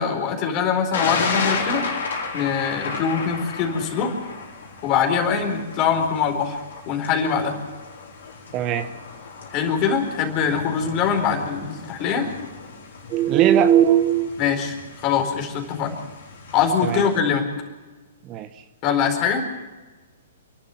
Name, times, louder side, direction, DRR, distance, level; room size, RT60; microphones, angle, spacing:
voice 1, 0.0-1.9 2.3-4.1 4.8-6.6 6.9-7.6 9.5-12.3 14.4-14.8 15.0-16.0 16.5-17.5 18.8-19.5, left 6 dB, 35° left, 3 dB, 4.4 m, -23 dB
Thunder, 0.9-17.2, left 4 dB, 65° left, 4.6 m, -33 dB
voice 2, 8.5-8.9 13.1-14.3 16.8-17.0 18.3-18.5, right 10 dB, 30° right, 10 dB, 1.0 m, -18 dB
29.5 x 12.0 x 7.8 m, 1.2 s
figure-of-eight pair, 115°, 0 cm